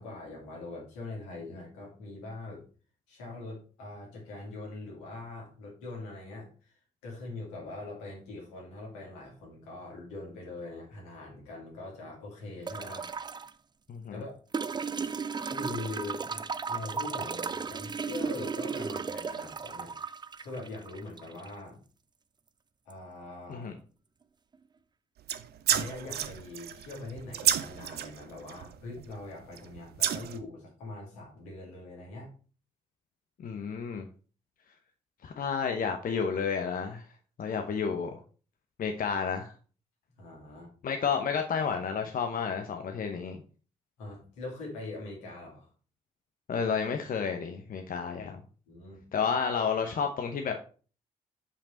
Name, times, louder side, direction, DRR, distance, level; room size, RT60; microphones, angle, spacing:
voice 1, 0.0-2.6 3.1-6.7 7.0-13.5 14.1-14.3 15.4-21.8 22.9-23.7 25.7-32.3 40.2-40.7 44.0-45.7 48.7-49.1, left 2 dB, 85° left, -3 dB, 2.6 m, -42 dB
sound 1, 12.7-13.5 14.5-21.5 22.9-23.0, right 5 dB, 25° right, 0.4 m, -35 dB
voice 2, 13.9-14.2 23.5-23.7 33.4-34.0 35.2-37.1 37.4-38.2 38.8-39.5 40.8-43.4 46.5-48.4 49.1-50.5, left 6 dB, 55° left, 5 dB, 0.9 m, -31 dB
sound 2, 25.2-29.2 29.6-30.4, right 11 dB, 65° right, 0.6 m, -31 dB
5.5 x 5.2 x 4.3 m, 0.38 s
hypercardioid pair, 45°, 17 cm